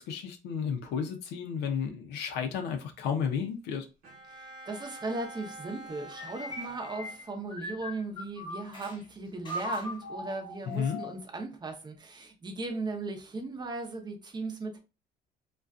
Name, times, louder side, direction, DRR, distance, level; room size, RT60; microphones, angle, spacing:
voice 1, 0.0-3.9 10.7-11.0, left 7 dB, 80° left, 0.6 m, -32 dB
Bowed string instrument, 4.0-7.7, right 1 dB, 55° right, 1.0 m, -47 dB
voice 2, 4.3-14.8, right 3 dB, 25° right, 0.7 m, -37 dB
sound 1, 6.1-9.0 9.4-11.2, left 2 dB, 25° left, 0.7 m, -40 dB
2.4 x 2.2 x 2.3 m
cardioid pair, 110°, 17 cm